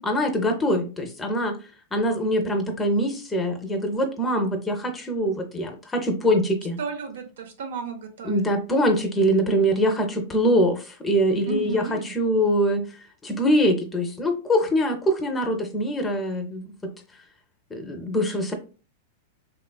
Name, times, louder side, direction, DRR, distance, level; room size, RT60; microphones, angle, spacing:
voice 1, 0.1-1.5 1.9-6.8 8.2-10.8 11.0-12.8 13.2-16.6 17.7-18.5, equal, 15° left, 6 dB, 0.5 m, -23 dB
voice 2, 6.8-8.4 11.5-12.1, right 6 dB, 75° right, 5 dB, 0.6 m, -33 dB
3.1 x 2.3 x 2.2 m, 0.35 s
hypercardioid pair, 120°, 0 cm